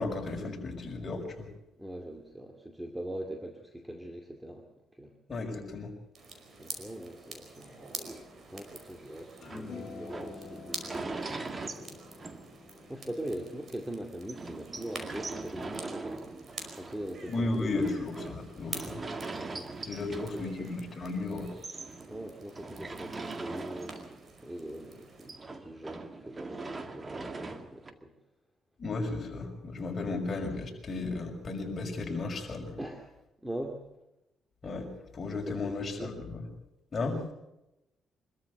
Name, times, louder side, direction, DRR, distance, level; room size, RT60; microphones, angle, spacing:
voice 1, 0.0-1.5 5.3-5.9 17.3-19.0 19.9-21.5 28.8-32.7 34.6-34.9 35.1-36.4 36.9-37.2, left 3 dB, 35° left, 1 dB, 6.0 m, -34 dB
voice 2, 1.8-4.7 4.9-5.1 6.6-12.0 12.9-16.2 16.8-18.0 19.5-19.7 20.1-20.7 22.1-24.0 24.4-28.1 32.8-33.1 33.4-33.8 35.3-36.1, right 1 dB, 5° right, 4 dB, 2.5 m, -41 dB
sound 1, 6.1-25.3, right 4 dB, 50° right, 5.1 m, -48 dB
sound 2, 8.0-13.0 13.4-13.5 13.7-13.8 14.3-21.1 21.4-24.5 24.7-27.9, right 3 dB, 30° right, 1.9 m, -42 dB
sound 3, 9.4-15.9, left 4 dB, 50° left, 3.6 m, -49 dB
25.0 x 13.5 x 8.1 m, 0.91 s
cardioid pair, 90°, 0 cm